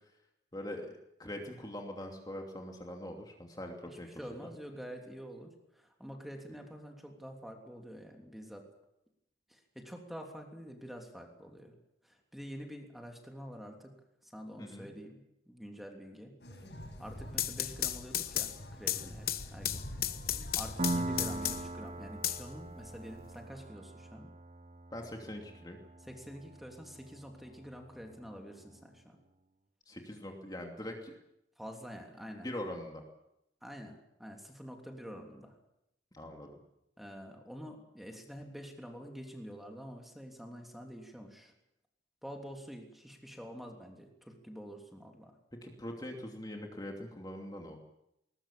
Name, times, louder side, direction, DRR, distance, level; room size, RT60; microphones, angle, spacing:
voice 1, 0.5-4.5 14.6-14.9 24.9-25.8 29.9-31.1 32.4-33.0 36.1-36.6 45.6-47.8, left 1 dB, 20° left, 2 dB, 2.8 m, -43 dB
voice 2, 3.9-8.6 9.5-11.8 12.0-13.9 14.2-16.3 17.0-19.8 20.5-24.3 26.0-29.2 31.6-32.5 33.6-35.5 37.0-41.5 42.2-45.3, equal, ahead, 2 dB, 3.2 m, -47 dB
sound 1, 16.4-21.6, equal, 75° left, 6.9 m, -45 dB
sound 2, 17.1-21.8 22.2-23.2, left 12 dB, 55° left, 1.2 m, -35 dB
Piano, 20.8-28.2, right 2 dB, 35° right, 0.8 m, -41 dB
20.5 x 20.5 x 8.6 m, 0.82 s
head